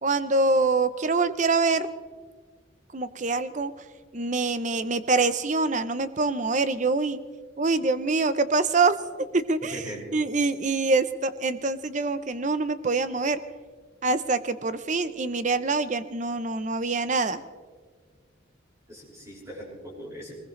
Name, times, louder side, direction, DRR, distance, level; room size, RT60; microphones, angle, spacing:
voice 1, 0.0-1.9 2.9-3.7 4.1-7.2 7.6-9.8 10.1-13.4 14.0-17.4, right 3 dB, 40° right, 13 dB, 0.7 m, -25 dB
voice 2, 9.7-10.0 18.9-20.3, equal, 15° right, -5 dB, 5.6 m, -40 dB
21.5 x 20.5 x 3.2 m, 1.5 s
head